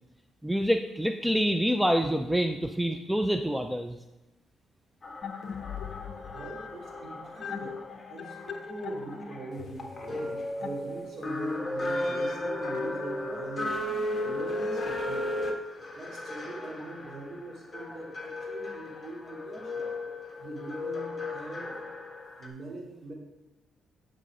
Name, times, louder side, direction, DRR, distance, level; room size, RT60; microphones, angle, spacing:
voice 1, 0.4-4.0, equal, 5° right, 6 dB, 0.5 m, -26 dB
sound 1, 5.0-22.5, left 1 dB, 25° left, 1.6 m, -35 dB
sound 2, 5.2-11.4, left 7 dB, 55° left, 0.6 m, -41 dB
voice 2, 6.3-7.8 8.1-13.8 14.2-15.4 15.9-19.9 20.4-21.8 22.4-23.1, right 2 dB, 50° right, -2 dB, 3.1 m, -41 dB
9.1 x 6.4 x 4.9 m, 0.99 s
cardioid pair, 90°, 0 cm